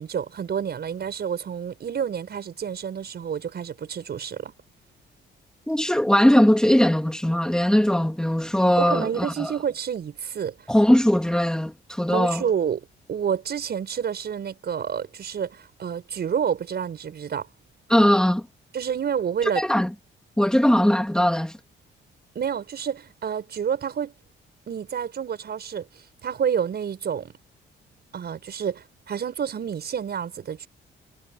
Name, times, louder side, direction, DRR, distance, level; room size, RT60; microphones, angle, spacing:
voice 1, 0.0-4.5 8.8-10.5 12.1-17.5 18.7-19.6 22.3-24.1 24.7-27.3 28.1-30.7, right 8 dB, 55° right, 6.5 m, -29 dB
voice 2, 5.7-9.5 10.7-12.4 17.9-18.4 19.4-19.9 20.4-21.6, equal, 5° left, 2.3 m, -20 dB
cardioid pair, 90°, 20 cm